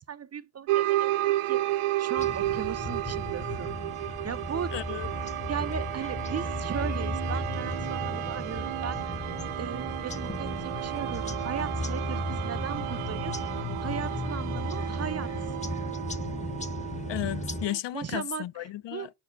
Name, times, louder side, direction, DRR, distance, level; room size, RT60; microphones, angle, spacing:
voice 1, 0.0-1.6 2.0-4.7 5.5-9.0 9.6-13.4 13.8-15.3 17.9-19.1, right 8 dB, 35° right, 0.4 m, -37 dB
sound 1, 0.7-17.8, right 14 dB, 85° right, 0.6 m, -32 dB
sound 2, 2.2-17.7, left 2 dB, 15° left, 0.7 m, -35 dB
voice 2, 4.7-5.1 17.1-19.1, left 13 dB, 60° left, 0.6 m, -34 dB
5.1 x 4.5 x 5.6 m
cardioid pair, 95°, 48 cm